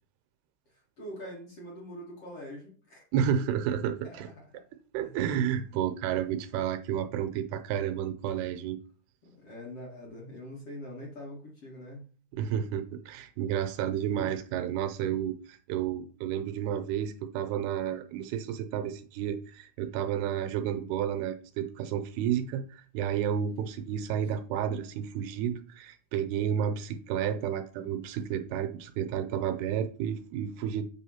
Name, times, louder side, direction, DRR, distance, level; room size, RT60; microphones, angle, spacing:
voice 1, 0.7-3.0 4.0-4.6 5.0-5.2 9.2-12.0 13.4-13.5 14.1-14.2 24.2-24.3, equal, 45° left, 2.0 m, -44 dB
voice 2, 3.1-4.3 4.9-8.8 12.3-30.8, right 9 dB, 80° right, 2.5 m, -31 dB
7.6 x 3.4 x 5.6 m
omnidirectional pair, 4.7 m